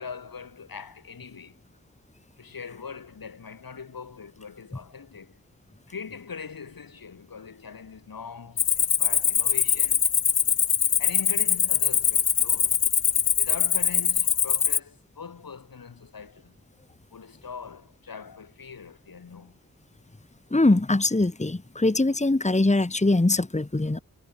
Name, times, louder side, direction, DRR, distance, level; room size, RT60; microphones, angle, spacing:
voice 1, 0.0-1.6 2.4-5.4 5.9-10.1 11.0-12.8 13.4-16.6 17.1-19.6, left 6 dB, 85° left, 7.5 m, -41 dB
Cricket, 8.6-14.8, left 7 dB, 45° left, 0.6 m, -23 dB
voice 2, 20.5-24.0, left 2 dB, 20° left, 2.0 m, -22 dB
cardioid pair, 60°, 34 cm